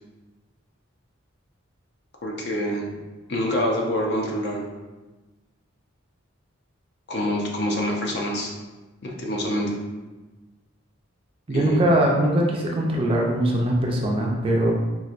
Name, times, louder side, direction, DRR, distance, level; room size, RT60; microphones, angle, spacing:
voice 1, 2.2-2.9 3.3-4.6 7.1-8.5 9.0-9.8 11.5-11.8, equal, 55° left, -1 dB, 0.6 m, -26 dB
voice 2, 11.5-14.7, right 1 dB, 25° right, -1 dB, 0.4 m, -21 dB
4.2 x 2.5 x 2.4 m, 1.2 s
head